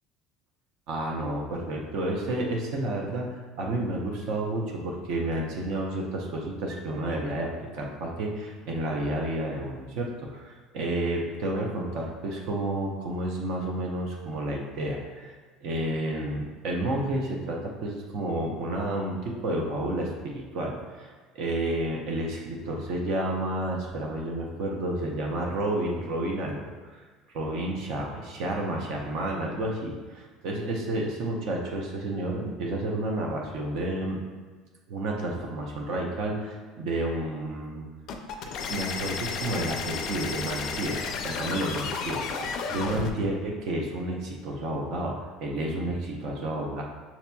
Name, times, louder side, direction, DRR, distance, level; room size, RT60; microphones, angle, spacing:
voice 1, 0.9-26.6 26.8-27.0 27.3-34.2 34.9-37.9 38.4-41.0 41.2-42.2 42.7-46.8, right 1 dB, 60° right, 0 dB, 0.6 m, -31 dB
sound 1, 38.1-43.1, left 5 dB, 50° left, 0.4 m, -32 dB
5.9 x 2.8 x 2.2 m, 1.4 s
cardioid pair, 155°, 0 cm